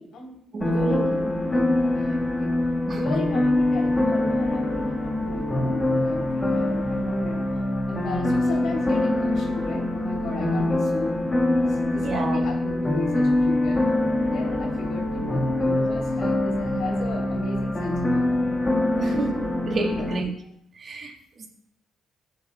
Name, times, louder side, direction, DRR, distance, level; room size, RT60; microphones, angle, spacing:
voice 1, 0.0-0.4 0.7-2.5 2.9-7.4 7.9-11.2 11.6-13.9 14.2-18.4 19.0-19.4 19.6-20.1, left 2 dB, 75° left, -1 dB, 3.2 m, -36 dB
voice 2, 0.5-1.1 2.9-3.0 12.0-12.4 19.0-19.3 19.7-20.3 20.8-21.5, right 4 dB, 50° right, 2 dB, 1.5 m, -29 dB
sound 1, 0.6-20.2, left 1 dB, 15° left, 1.6 m, -24 dB
15.0 x 6.7 x 2.3 m, 0.71 s
cardioid pair, 90°, 0 cm